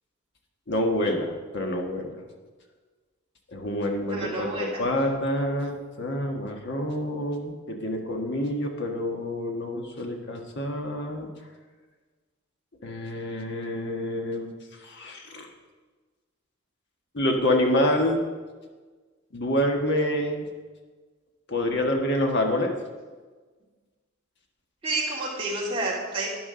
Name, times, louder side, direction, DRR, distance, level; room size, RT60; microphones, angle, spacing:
voice 1, 0.7-2.2 3.5-11.3 12.8-14.5 14.8-15.5 17.1-18.2 19.3-20.4 21.5-22.7, left 1 dB, 55° left, 2 dB, 1.4 m, -27 dB
voice 2, 3.7-4.9 24.8-26.3, right 2 dB, 25° right, -5 dB, 2.9 m, -30 dB
12.5 x 10.0 x 3.8 m, 1.4 s
head